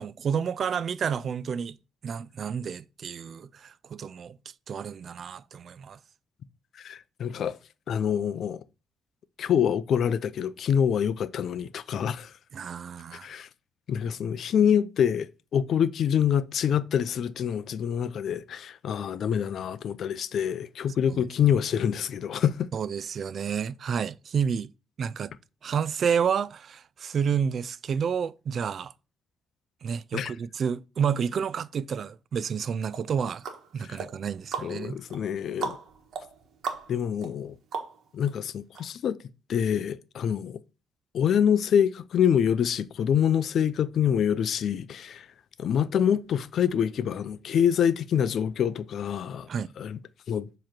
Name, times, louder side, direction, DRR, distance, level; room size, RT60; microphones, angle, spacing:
voice 1, 0.0-1.8 2.0-4.4 4.7-6.0 12.5-13.3 21.1-21.3 22.7-24.7 25.0-25.3 25.6-28.9 29.8-33.4 33.7-35.0 49.5-49.7, right 7 dB, 55° right, 0.3 m, -30 dB
voice 2, 6.8-7.6 7.9-8.6 9.4-12.3 13.2-13.5 13.9-22.7 30.1-30.3 33.9-34.0 34.6-35.8 36.9-37.6 38.1-39.2 39.5-40.6 41.1-45.3 45.6-49.5 49.8-50.0 50.3-50.5, left 8 dB, 65° left, 0.4 m, -26 dB
sound 1, 32.9-38.3 38.7-38.8, right 6 dB, 75° right, 1.2 m, -38 dB
7.3 x 3.0 x 4.4 m
cardioid pair, 90°, 0 cm